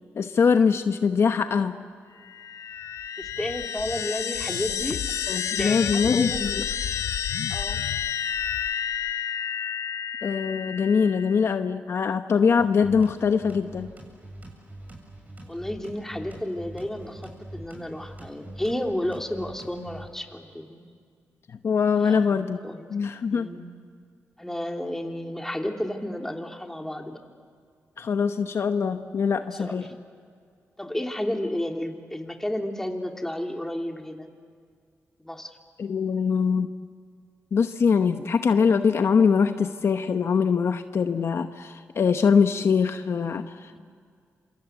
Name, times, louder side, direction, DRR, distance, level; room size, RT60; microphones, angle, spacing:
voice 1, 0.1-1.8 5.3-6.6 10.2-13.9 21.6-22.6 22.9-23.5 28.0-29.8 35.8-36.7 37.5-43.8, left 6 dB, 60° left, 8 dB, 1.0 m, -23 dB
sound 1, 2.2-11.5, left 9 dB, 80° left, 0.6 m, -30 dB
voice 2, 3.2-5.0 5.5-6.4 7.5-7.8 15.5-20.8 22.0-22.9 23.3-23.7 24.4-27.2 29.4-29.9 30.8-34.3 35.2-35.5 43.7-43.8, left 1 dB, 10° left, 3 dB, 3.0 m, -32 dB
sound 2, 12.6-20.1, right 1 dB, 30° right, 7.8 m, -44 dB
27.5 x 26.5 x 8.2 m, 2.1 s
cardioid pair, 80°, 5 cm